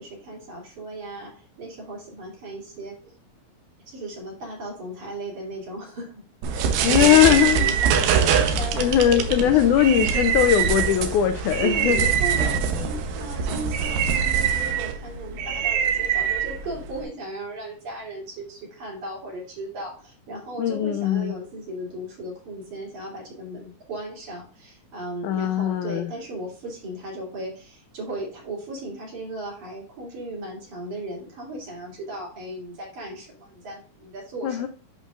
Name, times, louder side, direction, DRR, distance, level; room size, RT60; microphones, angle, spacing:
voice 1, 0.0-3.1 3.9-9.6 11.6-34.6, right 2 dB, 55° right, -3 dB, 4.1 m, -36 dB
sound 1, 6.4-17.0, right 7 dB, 80° right, 2.6 m, -23 dB
voice 2, 6.8-7.7 8.7-12.1 20.6-21.3 25.2-26.1 34.4-34.7, left 11 dB, 90° left, 8 dB, 1.7 m, -20 dB
11.0 x 5.3 x 2.4 m, 0.37 s
omnidirectional pair, 4.1 m